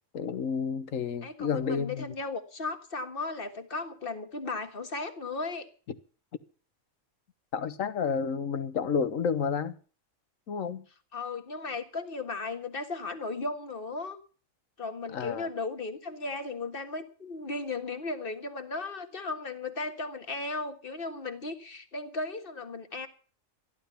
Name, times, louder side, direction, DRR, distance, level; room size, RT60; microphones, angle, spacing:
voice 1, 0.1-2.1 7.5-9.8 10.5-10.9 15.1-15.5, left 6 dB, 70° left, 1.5 m, -30 dB
voice 2, 1.2-5.7 11.1-14.2 14.8-23.1, left 3 dB, 40° left, 1.8 m, -36 dB
14.0 x 11.5 x 6.9 m
omnidirectional pair, 1.4 m